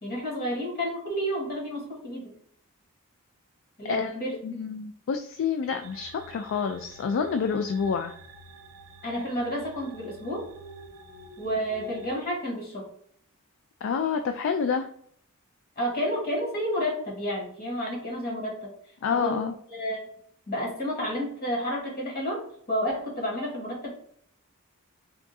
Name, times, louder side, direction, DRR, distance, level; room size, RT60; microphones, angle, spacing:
voice 1, 0.0-2.3 3.8-4.4 9.0-10.5 11.4-12.9 15.8-18.7 19.1-19.4 19.7-20.0 20.5-23.9, equal, 45° left, -2 dB, 1.4 m, -30 dB
voice 2, 4.4-8.1 13.8-14.9 19.0-19.5, left 6 dB, 60° left, 6 dB, 0.3 m, -28 dB
sound 1, 5.8-12.1, right 2 dB, 65° right, 0.6 m, -48 dB
3.6 x 2.3 x 3.9 m, 0.63 s
head